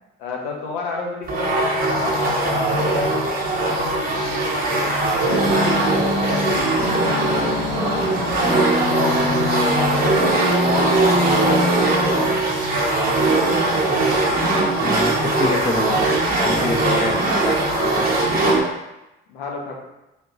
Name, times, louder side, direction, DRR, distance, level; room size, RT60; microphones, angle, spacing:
voice 1, 0.2-3.2 3.6-4.9 5.2-7.4 7.8-10.4 10.6-12.5 19.3-19.7, left 4 dB, 70° left, -1 dB, 0.8 m, -31 dB
sound 1, 1.3-18.6, right 2 dB, 30° right, 0.9 m, -20 dB
sound 2, 5.3-12.7, left 2 dB, 90° right, 0.7 m, -26 dB
voice 2, 14.8-16.0 16.4-18.0, left 3 dB, 25° left, 2 dB, 0.7 m, -27 dB
3.6 x 2.6 x 2.8 m, 0.95 s
figure-of-eight pair, 50°, 29 cm